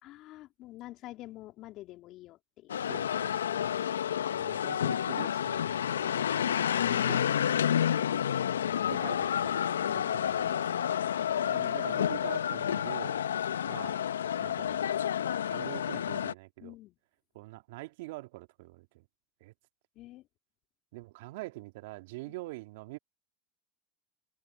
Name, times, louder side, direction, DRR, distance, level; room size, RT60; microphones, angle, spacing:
voice 1, 0.0-2.9 6.8-7.3 8.3-8.5 16.6-17.0 20.0-20.3 22.2-22.4, left 16 dB, 55° left, 3.5 m, -48 dB
sound 1, 2.7-16.3, left 9 dB, 85° left, 0.8 m, -30 dB
voice 2, 2.9-3.6 4.3-6.6 7.0-7.3 8.9-9.5 9.9-10.5 11.5-13.2 13.7-14.0 14.4-14.9 15.5-16.7 17.3-19.1 19.4-19.5 20.9-23.0, right 21 dB, 70° right, 2.4 m, -45 dB
hypercardioid pair, 80°, 0 cm